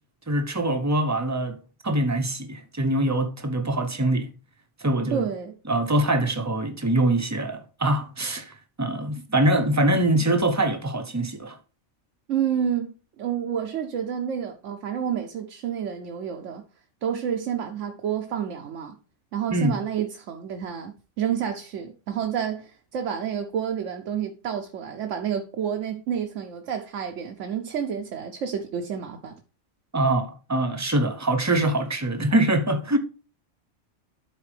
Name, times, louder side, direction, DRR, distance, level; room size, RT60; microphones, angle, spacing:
voice 1, 0.3-1.6 1.8-4.3 4.8-5.2 5.7-11.6 19.5-19.8 29.9-33.0, right 1 dB, 15° right, 0.6 m, -24 dB
voice 2, 5.1-5.6 12.3-16.6 17.0-18.9 19.3-29.4, right 8 dB, 75° right, 1.1 m, -29 dB
12.5 x 4.2 x 3.3 m
omnidirectional pair, 1.3 m